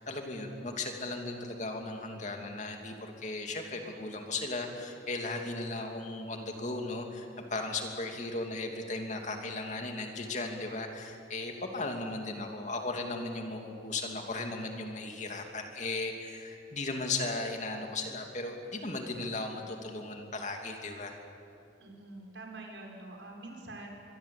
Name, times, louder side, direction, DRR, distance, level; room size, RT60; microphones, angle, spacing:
voice 1, 0.0-21.2, left 2 dB, 40° left, 3 dB, 2.8 m, -36 dB
voice 2, 21.8-23.9, right 2 dB, 80° right, 1 dB, 5.0 m, -45 dB
25.0 x 23.5 x 8.6 m, 2.6 s
head